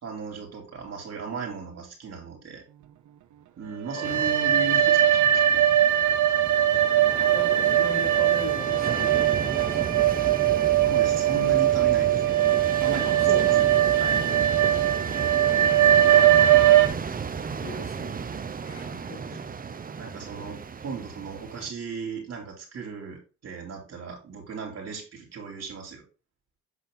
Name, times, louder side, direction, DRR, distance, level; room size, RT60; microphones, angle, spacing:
voice 1, 0.0-2.6 3.6-5.6 6.7-6.8 10.8-12.5 12.8-13.5 13.9-14.2 20.0-26.0, right 4 dB, 55° right, 3.4 m, -36 dB
sound 1, 3.9-16.9, right 11 dB, 75° right, 0.8 m, -21 dB
sound 2, 4.0-21.7, right 6 dB, 30° right, 0.7 m, -34 dB
voice 2, 7.3-10.1 13.0-13.5 16.0-16.9 17.6-18.3 18.6-19.2, left 3 dB, 45° left, 3.0 m, -39 dB
8.3 x 4.3 x 3.9 m
cardioid pair, 90°, 30 cm